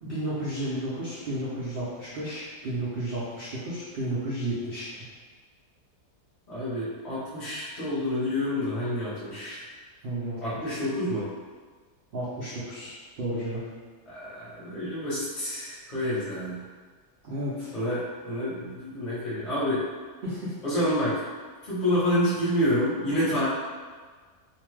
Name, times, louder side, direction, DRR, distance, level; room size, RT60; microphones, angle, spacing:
voice 1, 0.0-4.8 10.0-10.8 12.1-13.6 17.2-17.7 20.2-20.5, right 1 dB, 80° right, -9 dB, 0.5 m, -32 dB
voice 2, 6.5-9.7 10.4-11.3 14.1-16.6 17.7-19.8 20.6-21.2 21.6-23.4, left 1 dB, 35° left, -11 dB, 0.7 m, -28 dB
2.6 x 2.2 x 3.1 m, 1.5 s
omnidirectional pair, 1.7 m